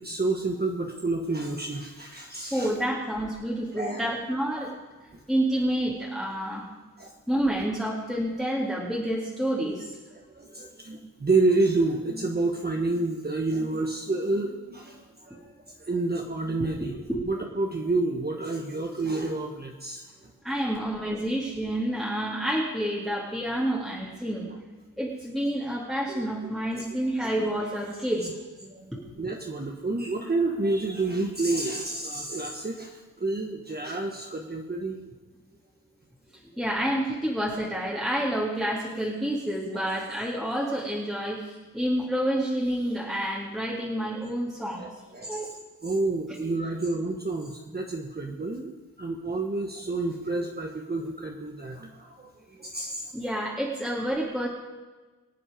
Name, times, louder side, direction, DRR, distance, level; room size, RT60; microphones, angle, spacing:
voice 1, 0.0-2.7 3.7-4.1 4.5-4.7 7.0-7.1 9.6-9.7 10.3-17.0 17.3-20.3 26.1-26.8 28.2-28.3 28.6-28.9 29.2-35.0 39.8-40.0 44.8-45.5 45.8-48.7 49.0-53.1, right 2 dB, 25° right, 1 dB, 1.3 m, -29 dB
voice 2, 2.5-4.7 5.3-6.7 7.3-9.9 17.1-17.2 20.4-24.5 25.0-28.4 28.9-29.0 36.6-44.9 45.3-45.5 53.1-54.5, right 1 dB, ahead, -5 dB, 2.3 m, -29 dB
23.5 x 8.5 x 5.0 m, 1.2 s
wide cardioid pair, 120°, 37 cm